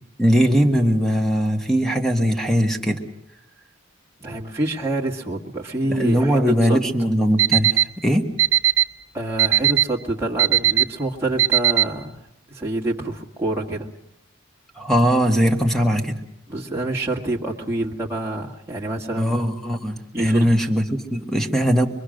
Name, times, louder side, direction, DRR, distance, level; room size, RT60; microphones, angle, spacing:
voice 1, 0.2-3.0 5.9-8.3 14.8-16.2 19.2-21.9, equal, ahead, 4 dB, 1.8 m, -20 dB
voice 2, 4.2-6.8 9.1-13.9 16.5-19.4 20.1-20.5, right 2 dB, 15° right, -3 dB, 2.1 m, -27 dB
Alarm, 7.4-7.8 8.4-8.8 9.4-9.8 10.4-10.8 11.4-11.8, right 14 dB, 65° right, 1.2 m, -16 dB
25.5 x 22.5 x 6.6 m, 0.79 s
head